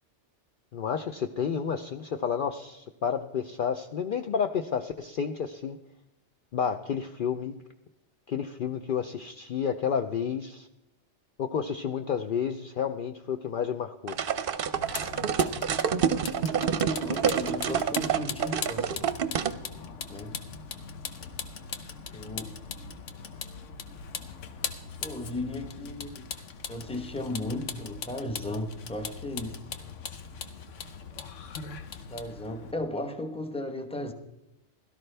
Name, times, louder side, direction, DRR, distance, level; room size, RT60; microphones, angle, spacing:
voice 1, 0.7-5.8 6.5-7.5 8.3-10.7 11.4-14.2, left 7 dB, 55° left, 7 dB, 0.7 m, -30 dB
sound 1, 14.1-19.6, right 7 dB, 55° right, 0.8 m, -27 dB
Vehicle, 14.7-32.7, left 6 dB, 85° left, 1.2 m, -40 dB
voice 2, 16.6-19.1 20.1-20.4 22.1-22.6 25.0-26.3 26.7-29.6 32.1-34.1, left 1 dB, 5° left, 6 dB, 0.9 m, -36 dB
16.5 x 12.5 x 3.3 m, 0.91 s
omnidirectional pair, 1.2 m